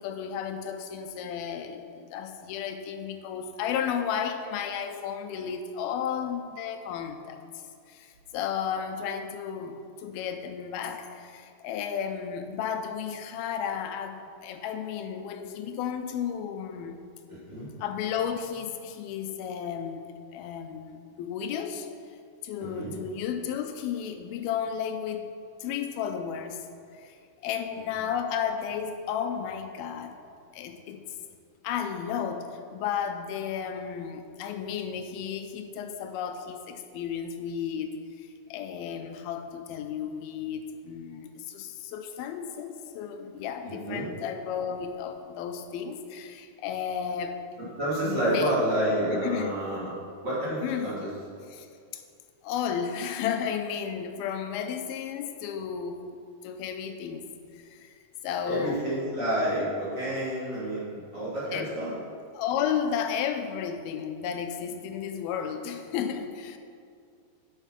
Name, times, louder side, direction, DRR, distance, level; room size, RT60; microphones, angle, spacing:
voice 1, 0.0-7.4 7.9-17.0 17.8-20.0 20.3-21.9 22.4-25.3 25.6-26.6 26.9-27.2 27.4-30.2 30.5-31.0 31.6-47.4 48.0-48.5 49.1-49.9 50.6-50.9 51.5-51.7 51.9-52.0 52.4-56.2 56.4-57.3 57.5-57.9 58.2-58.8 61.4-61.7 62.3-66.6, left 8 dB, 85° left, 7 dB, 2.6 m, -33 dB
voice 2, 17.3-17.7 22.6-22.9 43.7-44.1 47.6-50.0 50.2-51.1 58.4-61.9, right 1 dB, 30° right, -9 dB, 3.2 m, -29 dB
9.3 x 8.0 x 5.9 m, 2.4 s
omnidirectional pair, 4.2 m